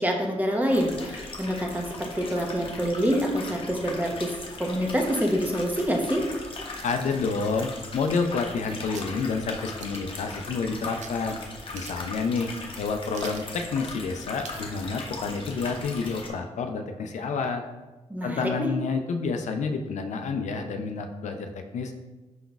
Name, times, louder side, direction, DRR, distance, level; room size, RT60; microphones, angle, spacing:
voice 1, 0.0-4.3 4.6-6.3 18.1-18.7, equal, 15° right, 1 dB, 0.8 m, -26 dB
sound 1, 0.7-16.3, left 3 dB, 45° left, 0.7 m, -39 dB
voice 2, 6.8-11.4 11.7-12.5 12.8-17.6 18.2-21.9, left 4 dB, 75° left, 5 dB, 0.4 m, -29 dB
sound 2, 7.5-8.6 8.9-9.1 9.8-10.2 11.0-11.2 11.5-11.6 11.7-12.2 12.6-12.7 13.1-13.5 14.4-14.7 15.1-15.2, right 6 dB, 75° right, 0.4 m, -44 dB
5.0 x 3.8 x 2.3 m, 1.2 s
cardioid pair, 80°, 12 cm